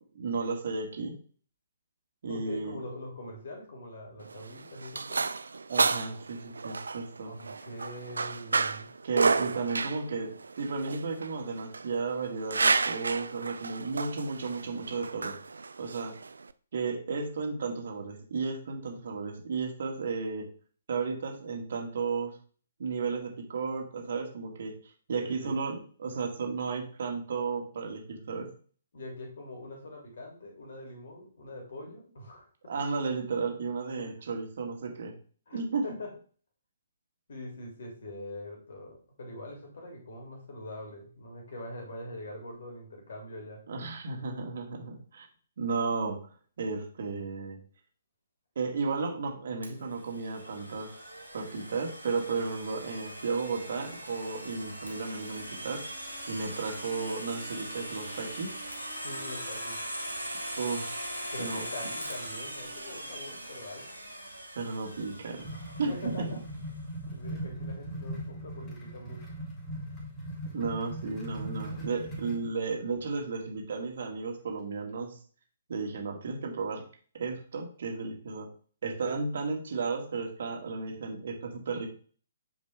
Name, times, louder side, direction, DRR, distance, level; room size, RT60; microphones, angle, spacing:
voice 1, 0.2-1.2 2.2-2.8 5.7-7.3 9.0-15.4 15.8-16.1 16.7-20.5 20.9-22.3 22.8-24.7 25.1-28.5 32.7-35.1 35.5-35.8 43.7-45.3 45.6-46.2 46.6-47.6 48.6-50.9 51.3-55.8 56.3-58.5 60.6-61.1 61.4-61.6 64.6-65.5 65.8-66.3 70.5-75.2 75.7-76.8 77.2-78.5 78.8-81.9, right 4 dB, 55° right, 2 dB, 2.0 m, -33 dB
voice 2, 2.3-5.3 7.2-8.9 25.2-25.5 28.9-32.4 34.0-34.1 35.5-36.1 37.3-43.6 59.0-59.8 61.3-63.9 65.8-66.4 67.1-69.4 79.0-79.1, left 1 dB, 55° left, 1 dB, 3.0 m, -43 dB
sound 1, 4.2-16.5, right 4 dB, 70° right, 0.4 m, -31 dB
Domestic sounds home sounds, 49.6-66.4, right 1 dB, 90° left, 2.5 m, -41 dB
sound 2, 64.9-72.5, right 1 dB, 20° left, 3.3 m, -39 dB
9.1 x 5.1 x 3.4 m, 0.43 s
figure-of-eight pair, 130°, 0 cm